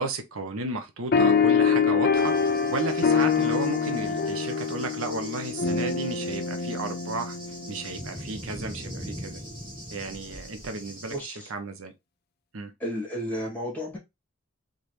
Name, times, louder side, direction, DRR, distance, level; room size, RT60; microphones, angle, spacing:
voice 1, 0.0-7.4 7.7-9.4 9.9-11.9 12.5-12.7, right 3 dB, 80° right, 0.9 m, -33 dB
sound 1, 1.1-8.0, left 5 dB, 50° left, 0.6 m, -25 dB
Cricket / Thunder, 2.2-11.2, equal, 25° right, 2.6 m, -42 dB
voice 2, 11.1-11.5 12.8-14.0, equal, 10° left, 2.4 m, -32 dB
4.1 x 3.7 x 3.2 m
head